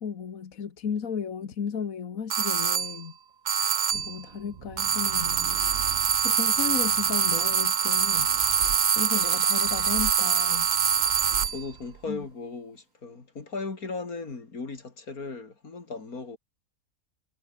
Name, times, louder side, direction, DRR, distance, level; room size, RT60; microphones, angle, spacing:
voice 1, 0.0-3.1 3.8-5.5 6.2-8.3 9.0-10.7 12.1-12.3, left 6 dB, 70° left, 1.9 m, -34 dB
sound 1, 2.3-3.0 3.5-4.2 4.8-11.6, right 7 dB, 40° right, 0.7 m, -24 dB
sound 2, 3.9-12.2, right 10 dB, 60° right, 1.0 m, -42 dB
voice 2, 11.5-16.4, left 3 dB, 90° left, 3.8 m, -37 dB
omnidirectional pair, 1.5 m